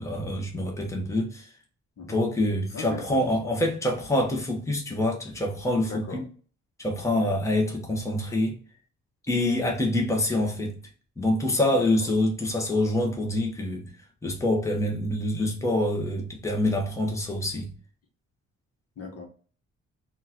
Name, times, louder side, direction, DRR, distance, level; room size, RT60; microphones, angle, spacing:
voice 1, 0.0-1.5 2.1-6.2 6.8-8.6 9.3-10.8 11.2-13.9 14.2-17.7, left 1 dB, 10° left, 1.0 m, -26 dB
voice 2, 2.7-3.2 5.8-6.2 7.1-7.4 11.7-12.1 19.0-19.3, left 4 dB, 50° left, 1.0 m, -39 dB
3.7 x 2.5 x 2.8 m
cardioid pair, 90°, 30 cm